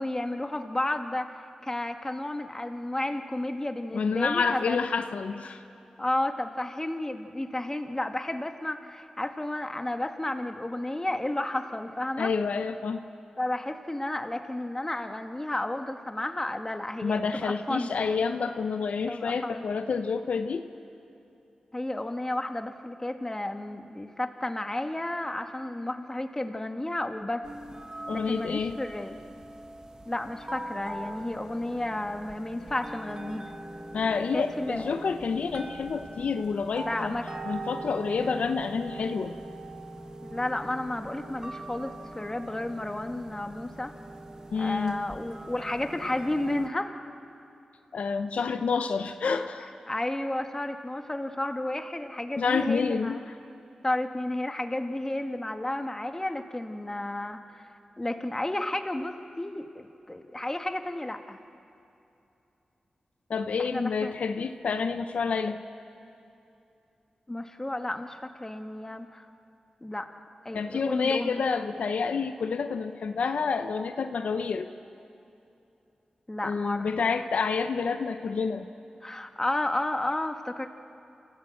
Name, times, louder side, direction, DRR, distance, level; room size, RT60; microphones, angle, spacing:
voice 1, 0.0-4.8 6.0-12.3 13.4-18.2 19.1-19.6 21.7-27.5 28.1-29.2 30.1-33.5 34.3-35.0 36.8-37.4 40.2-43.9 44.6-46.9 49.9-53.3 53.8-61.4 63.6-64.1 67.3-69.3 69.8-70.1 70.4-71.5 76.3-77.1 79.0-80.7, left 1 dB, 20° left, 6 dB, 1.6 m, -32 dB
voice 2, 3.9-5.6 12.2-13.0 17.0-20.6 28.1-28.8 33.9-37.1 37.4-39.3 44.5-45.0 47.9-49.7 52.4-53.2 63.3-65.6 70.5-74.7 76.4-78.7, left 5 dB, 80° left, 8 dB, 0.8 m, -28 dB
sound 1, 27.4-46.7, right 1 dB, 30° right, 1.7 m, -42 dB
28.0 x 15.5 x 7.8 m, 2.8 s
cardioid pair, 50°, 2 cm